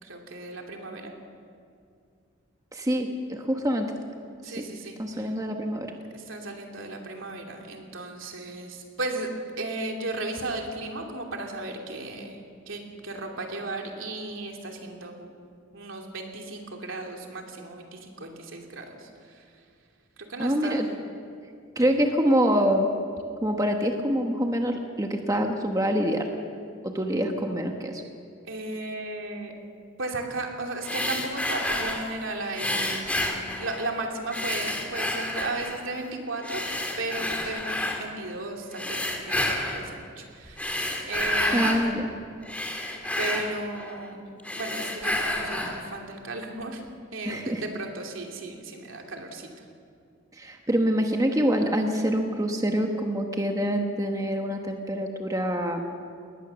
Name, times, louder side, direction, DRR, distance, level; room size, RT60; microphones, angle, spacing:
voice 1, 0.0-1.1 4.4-5.3 6.1-9.3 9.6-12.4 12.7-15.3 15.7-19.4 20.2-20.9 28.5-29.5 30.0-33.2 33.6-36.6 37.0-41.9 43.2-44.3 44.6-46.8 47.1-49.5, right 2 dB, 75° right, 2 dB, 2.8 m, -35 dB
voice 2, 2.7-3.9 4.5-4.6 5.0-5.9 20.4-20.9 21.8-22.9 23.4-26.3 26.8-28.0 41.5-42.1 47.2-47.6 50.4-55.9, equal, 15° right, 3 dB, 1.2 m, -25 dB
sound 1, 30.8-32.1 32.5-34.0 34.3-35.9 36.4-38.0 38.7-39.9 40.4-41.8 42.2-44.1 44.4-45.8, left 1 dB, 5° left, 2.0 m, -30 dB
20.0 x 19.0 x 7.0 m, 2.3 s
head